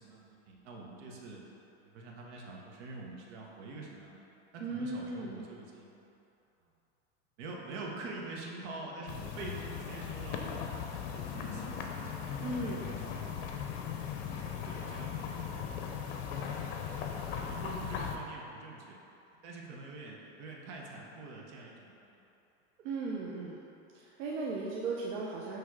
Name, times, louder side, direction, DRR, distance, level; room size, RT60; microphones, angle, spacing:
voice 1, 0.0-1.4 1.8-4.2 4.5-6.0 6.6-6.7 7.4-10.8 11.1-12.1 12.6-13.3 14.3-15.7 17.0-19.0 19.4-22.3, right 3 dB, 70° right, -1 dB, 1.2 m, -46 dB
voice 2, 4.6-5.5 12.4-12.9 22.8-23.6 23.9-25.6, right 3 dB, 90° right, -3 dB, 0.8 m, -37 dB
sound 1, 9.1-18.2, left 7 dB, 60° left, 0.8 m, -38 dB
6.7 x 3.4 x 4.7 m, 2.8 s
supercardioid pair, 130°, 36 cm